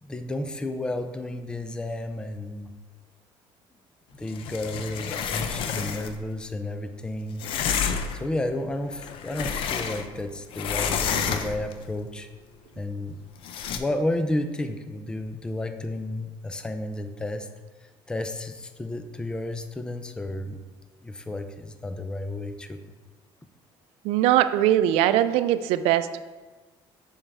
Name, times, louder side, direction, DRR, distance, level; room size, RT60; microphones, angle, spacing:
voice 1, 0.0-2.7 4.1-7.4 8.1-12.3 12.8-13.2 13.7-17.5 18.1-20.6 21.0-22.8, left 1 dB, 10° left, 8 dB, 0.4 m, -32 dB
sound 1, 4.3-6.2 7.4-8.3 8.9-10.2 10.5-11.7 13.4-13.8, left 7 dB, 60° left, 0.5 m, -29 dB
voice 2, 24.0-26.2, right 12 dB, 85° right, 12 dB, 0.4 m, -21 dB
7.1 x 5.4 x 3.5 m, 1.3 s
cardioid pair, 140°, 10 cm